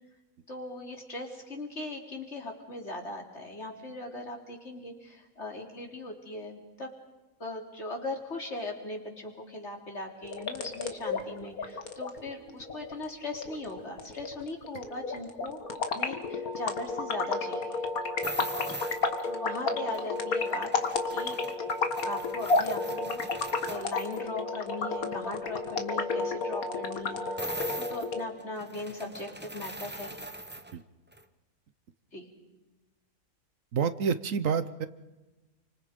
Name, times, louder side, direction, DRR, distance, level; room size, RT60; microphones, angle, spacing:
voice 1, 0.5-6.9 7.4-15.6 15.9-17.9 19.2-21.4 22.0-23.2 23.7-27.4 27.8-30.2 32.1-32.3, left 2 dB, 50° left, 1 dB, 3.9 m, -39 dB
sound 1, 10.2-28.2, left 3 dB, 80° left, 2.1 m, -32 dB
sound 2, 18.2-19.3 19.9-24.2 27.4-30.8 31.1-31.2, right 1 dB, 10° right, 0.9 m, -41 dB
voice 2, 33.7-34.9, right 6 dB, 65° right, 12 dB, 1.3 m, -28 dB
29.5 x 25.5 x 5.3 m, 1.1 s
omnidirectional pair, 1.5 m